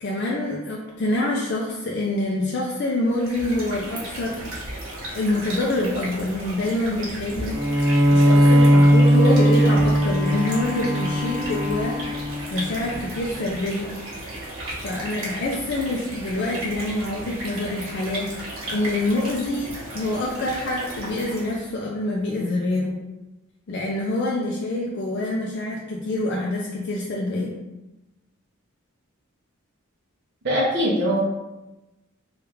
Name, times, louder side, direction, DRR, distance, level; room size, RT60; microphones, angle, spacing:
voice 1, 0.0-4.4 5.1-12.0 12.5-13.9 14.7-23.0 23.7-27.5, left 1 dB, 55° left, -3 dB, 0.4 m, -26 dB
sound 1, 3.1-21.7, right 1 dB, 70° right, 1.1 m, -35 dB
Bowed string instrument, 7.5-13.0, equal, 15° right, 1.0 m, -18 dB
voice 2, 30.4-31.2, equal, 50° right, -6 dB, 0.6 m, -21 dB
3.1 x 2.3 x 3.3 m, 1.0 s
head